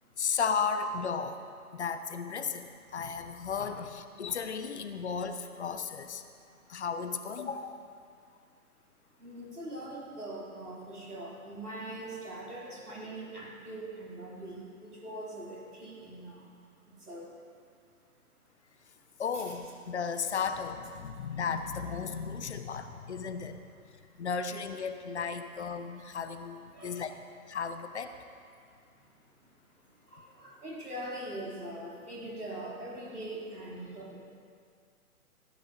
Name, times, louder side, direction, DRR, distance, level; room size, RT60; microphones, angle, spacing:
voice 1, 0.2-1.4 1.7-6.2 6.7-7.9 19.2-23.6 24.2-27.1 27.5-28.2, left 6 dB, 50° left, 9 dB, 1.0 m, -34 dB
voice 2, 6.2-6.7 9.1-17.6 18.8-18.9 19.3-19.6 21.1-21.3 22.6-22.7 23.8-24.3 26.7-27.0 28.7-34.2, right 1 dB, 85° right, -4 dB, 4.2 m, -43 dB
16.5 x 11.5 x 5.2 m, 2.3 s
figure-of-eight pair, 125°, 44 cm